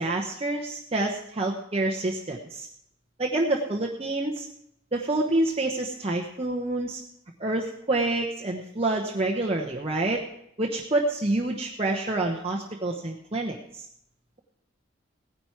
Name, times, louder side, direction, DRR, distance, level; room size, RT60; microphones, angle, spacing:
voice 1, 0.0-2.7 3.2-4.5 4.9-7.0 7.4-10.2 10.6-13.8, right 2 dB, 30° right, -1 dB, 1.0 m, -27 dB
17.0 x 10.0 x 4.7 m, 0.75 s
head